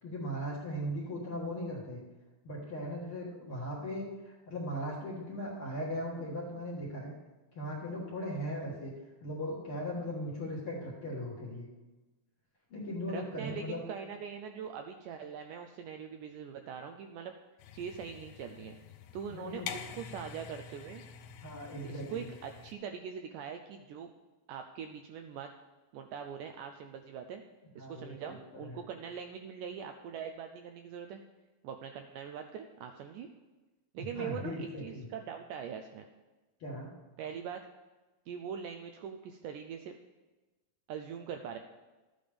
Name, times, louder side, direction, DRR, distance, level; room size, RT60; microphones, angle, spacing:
voice 1, 0.0-2.0 2.4-7.1 7.5-8.9 9.2-11.7 12.7-13.8 19.3-19.7 21.4-22.3 27.8-28.2 28.6-28.8 34.0-35.1 36.6-36.9, equal, 50° left, -4 dB, 1.8 m, -38 dB
voice 2, 13.1-17.3 17.7-18.8 19.1-21.0 21.9-24.1 24.5-25.5 25.9-27.4 27.7-31.2 31.6-33.3 33.9-36.0 37.2-37.6 38.3-39.9 40.9-41.6, right 7 dB, 85° right, 5 dB, 1.9 m, -42 dB
sound 1, 17.6-22.7, left 8 dB, 80° left, 2.5 m, -47 dB
13.0 x 9.0 x 3.4 m, 1.2 s
omnidirectional pair, 4.2 m